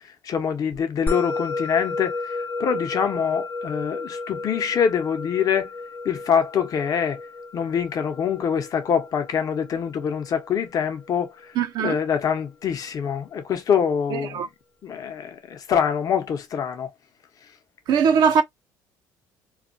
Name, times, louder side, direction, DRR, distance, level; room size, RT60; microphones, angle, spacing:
voice 1, 0.2-5.7 6.0-7.2 7.5-11.3 11.8-14.5 14.8-16.9, left 7 dB, 50° left, 0.8 m, -25 dB
Musical instrument, 1.1-11.7, left 3 dB, 20° left, 0.4 m, -33 dB
voice 2, 11.6-12.0 14.1-14.5 17.9-18.4, right 6 dB, 60° right, 0.6 m, -20 dB
2.3 x 2.1 x 2.6 m
cardioid pair, 95°, 8 cm